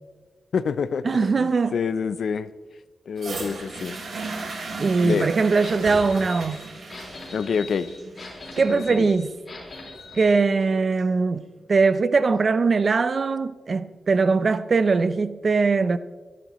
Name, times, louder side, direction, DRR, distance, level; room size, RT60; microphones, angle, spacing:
voice 1, 0.5-2.5 3.1-4.0 5.0-5.3 7.3-7.9 8.7-9.1, left 6 dB, 75° left, 0.5 m, -27 dB
voice 2, 1.0-1.8 4.8-6.6 8.6-9.3 10.1-16.0, right 4 dB, 45° right, 0.6 m, -21 dB
Toilet Flush, 3.2-11.2 12.0-12.1, right 3 dB, 65° right, 3.3 m, -37 dB
sound 1, 5.6-10.4, left 3 dB, 40° left, 4.4 m, -41 dB
24.5 x 12.0 x 3.1 m
wide cardioid pair, 125°, 0 cm